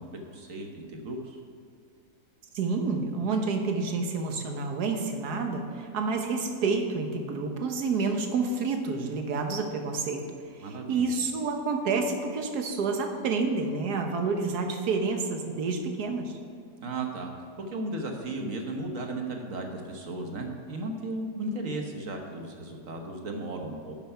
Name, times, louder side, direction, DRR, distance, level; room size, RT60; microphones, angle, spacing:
voice 1, 0.0-1.4 10.6-11.1 16.8-17.3 17.6-24.0, right 2 dB, 55° right, 3 dB, 1.4 m, -35 dB
voice 2, 2.5-10.2 10.5-16.3, right 4 dB, 70° right, 4 dB, 1.6 m, -29 dB
11.5 x 6.9 x 5.7 m, 2.4 s
omnidirectional pair, 1.8 m